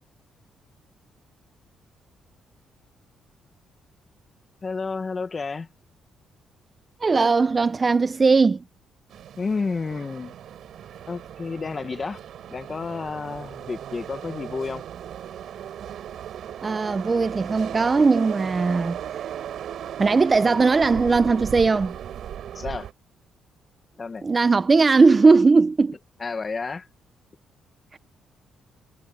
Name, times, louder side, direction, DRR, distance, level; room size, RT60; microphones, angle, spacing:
voice 1, 4.6-5.7 9.4-10.3 11.1-12.2 12.5-14.8 22.5-22.9 24.0-24.3 26.2-26.9, left 4 dB, 35° left, 1.2 m, -30 dB
voice 2, 7.0-8.6 16.6-19.0 20.0-22.0 24.2-26.0 27.9-28.0, right 4 dB, 30° right, 0.7 m, -19 dB
sound 1, 9.1-22.9, right 10 dB, 70° right, 5.8 m, -37 dB
cardioid pair, 90°, 0 cm